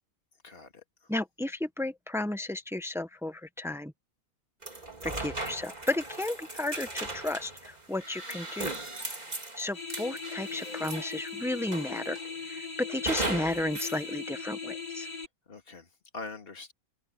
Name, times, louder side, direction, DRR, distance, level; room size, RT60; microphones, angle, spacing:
voice 1, 0.4-1.1 14.9-16.7, left 3 dB, 40° left, 2.7 m, -45 dB
voice 2, 1.1-3.9 5.0-8.8 9.6-15.1, left 2 dB, ahead, 1.3 m, -33 dB
sound 1, 4.6-11.3 11.7-12.3 13.1-14.0, right 2 dB, 30° right, 3.4 m, -37 dB
sound 2, 9.7-15.3, left 5 dB, 85° left, 4.2 m, -39 dB
omnidirectional pair, 1.5 m